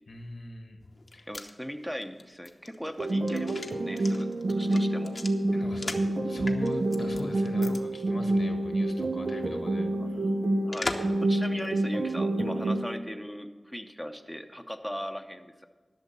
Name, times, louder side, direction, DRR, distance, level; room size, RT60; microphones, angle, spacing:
voice 1, 0.1-0.8 1.1-1.3 5.5-5.9 6.2-10.3, left 2 dB, 80° left, 5 dB, 1.4 m, -40 dB
sound 1, 0.9-6.1 6.5-7.2 7.6-7.8 8.1-8.2 10.7-11.2 11.6-11.7, left 2 dB, 60° left, 0.8 m, -38 dB
voice 2, 1.3-5.2 10.0-10.1 10.6-15.7, equal, ahead, 5 dB, 0.7 m, -39 dB
sound 2, 3.0-13.0, right 1 dB, 70° right, 0.7 m, -28 dB
12.0 x 6.3 x 6.7 m, 1.4 s
wide cardioid pair, 65°, 0 cm